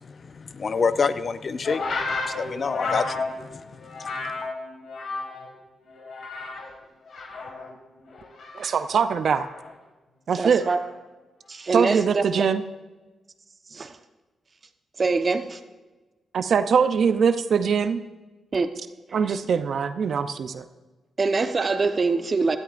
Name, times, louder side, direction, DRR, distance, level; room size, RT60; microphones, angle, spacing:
voice 1, 0.0-1.8 2.2-4.3, left 5 dB, 50° left, 12 dB, 0.6 m, -28 dB
sound 1, 1.6-5.6 5.9-6.8 7.1-9.7 10.6-10.9, left 3 dB, 70° left, 2.1 m, -33 dB
voice 2, 8.5-9.5 10.3-10.6 11.7-12.6 16.3-18.0 19.1-20.6, right 6 dB, 65° right, 11 dB, 0.6 m, -22 dB
voice 3, 10.3-10.8 11.5-12.2 13.7-14.0 15.0-15.6 18.5-18.7 19.1-19.3 21.2-22.6, right 4 dB, 45° right, 8 dB, 1.0 m, -24 dB
17.0 x 12.5 x 2.6 m, 1.2 s
supercardioid pair, 55°, 0 cm